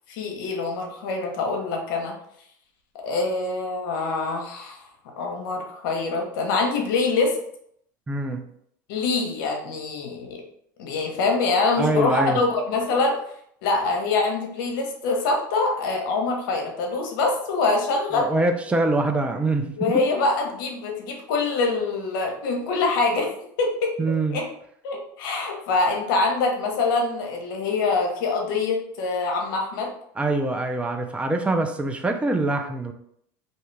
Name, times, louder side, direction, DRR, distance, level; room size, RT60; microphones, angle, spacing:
voice 1, 0.1-2.2 3.0-4.8 5.2-7.4 8.9-10.4 10.8-13.2 13.6-18.3 19.8-23.3 23.6-23.9 24.3-24.5 24.8-29.9, left 3 dB, 80° left, 1 dB, 0.8 m, -24 dB
voice 2, 8.1-8.4 11.8-12.4 18.1-20.0 24.0-24.4 30.2-32.9, right 2 dB, 10° right, 5 dB, 0.3 m, -24 dB
2.7 x 2.3 x 3.2 m, 0.70 s
supercardioid pair, 120°, 11 cm